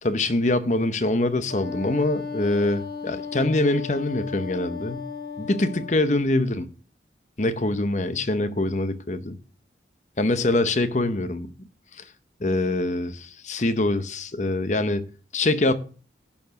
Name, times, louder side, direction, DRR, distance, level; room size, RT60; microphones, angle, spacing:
voice 1, 0.0-5.1 5.4-6.7 7.4-9.2 10.2-11.5 11.9-12.1 12.4-15.1 15.3-15.7, left 2 dB, 40° left, 0.8 m, -24 dB
Wind instrument woodwind instrument, 1.5-6.1, left 5 dB, 55° left, 1.5 m, -35 dB
11.0 x 4.7 x 6.5 m
head